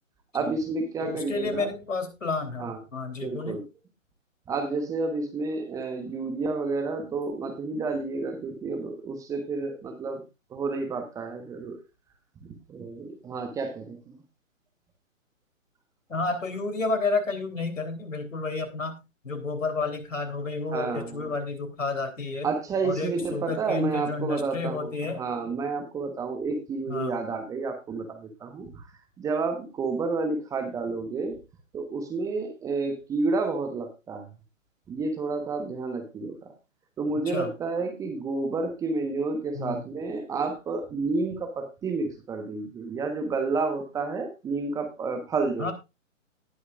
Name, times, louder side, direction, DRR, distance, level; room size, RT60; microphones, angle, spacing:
voice 1, 0.3-1.7 2.6-2.8 3.2-3.6 4.5-10.2 10.5-11.8 12.4-14.2 20.7-21.3 22.4-24.9 25.2-28.9 29.2-31.4 31.7-34.3 34.9-36.5 37.0-45.7, right 3 dB, 10° right, 5 dB, 1.1 m, -30 dB
voice 2, 1.0-3.6 16.1-19.0 19.2-22.5 22.8-25.2 26.9-27.2 37.3-37.5 39.5-39.8 45.6-45.7, left 3 dB, 70° left, 8 dB, 3.3 m, -31 dB
18.5 x 6.4 x 2.4 m, 0.26 s
figure-of-eight pair, 135°, 40 cm